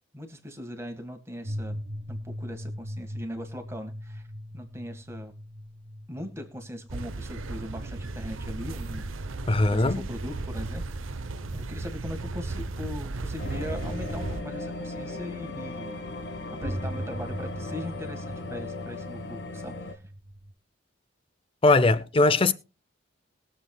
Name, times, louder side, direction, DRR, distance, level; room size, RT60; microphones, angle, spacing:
voice 1, 0.1-4.3 4.5-5.3 6.1-9.1 9.4-11.2 11.5-16.0 16.6-20.0, equal, 15° right, 1.7 m, -40 dB
sound 1, 1.4-10.8 11.7-11.8 16.6-20.5, equal, 40° right, 0.8 m, -40 dB
sound 2, 6.9-14.4, right 2 dB, 90° right, 0.8 m, -35 dB
voice 2, 9.5-10.0 21.6-22.5, left 2 dB, 25° left, 0.5 m, -20 dB
sound 3, 13.4-19.9, left 2 dB, 55° left, 1.6 m, -37 dB
22.0 x 7.4 x 2.3 m
head